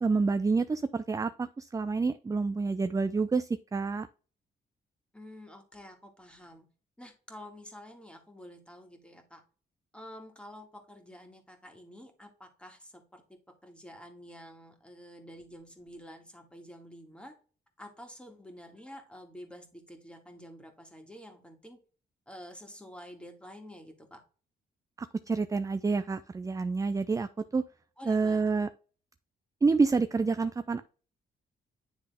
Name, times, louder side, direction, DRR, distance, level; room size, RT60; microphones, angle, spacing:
voice 1, 0.0-4.1 25.0-27.6 28.1-28.7 29.6-30.8, right 4 dB, 20° right, 11 dB, 0.4 m, -28 dB
voice 2, 5.1-6.7 7.0-9.4 9.9-13.2 13.6-17.3 17.8-21.8 22.3-24.2 28.0-28.4, equal, 5° left, 4 dB, 1.9 m, -49 dB
9.9 x 3.4 x 3.4 m, 0.38 s
cardioid pair, 80°, 19 cm